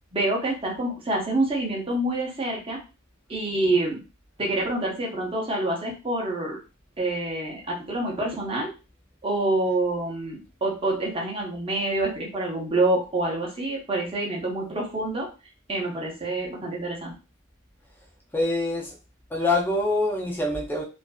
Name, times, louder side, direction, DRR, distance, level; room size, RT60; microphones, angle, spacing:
voice 1, 0.1-2.8 3.3-4.0 4.4-6.6 7.0-8.7 9.2-15.3 15.7-17.1, right 2 dB, 25° right, -1 dB, 0.7 m, -27 dB
voice 2, 18.3-18.9 19.3-20.8, left 2 dB, 10° left, -1 dB, 0.5 m, -25 dB
2.5 x 2.5 x 2.2 m, 0.31 s
head